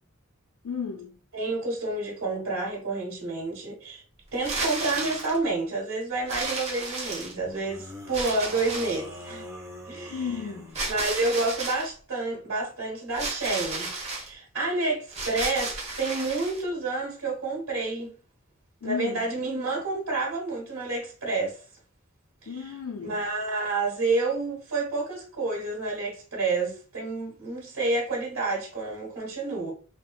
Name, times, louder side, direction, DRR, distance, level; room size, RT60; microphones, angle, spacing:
voice 1, 0.6-1.1 10.1-10.8 18.8-19.2 22.5-23.2, left 6 dB, 90° left, 0.5 m, -34 dB
voice 2, 1.3-4.0 4.3-9.4 9.8-10.2 10.9-13.9 14.2-18.1 18.8-21.6 22.4-22.5 23.0-29.7, right 3 dB, 75° right, 1.5 m, -29 dB
sound 1, 4.3-5.4 6.3-7.6 8.1-9.1 10.7-11.9 13.1-14.3 15.1-16.6, right 3 dB, 30° right, 1.0 m, -33 dB
sound 2, 4.8-5.3 7.5-10.9, equal, 15° right, 0.6 m, -43 dB
3.6 x 3.0 x 2.4 m
head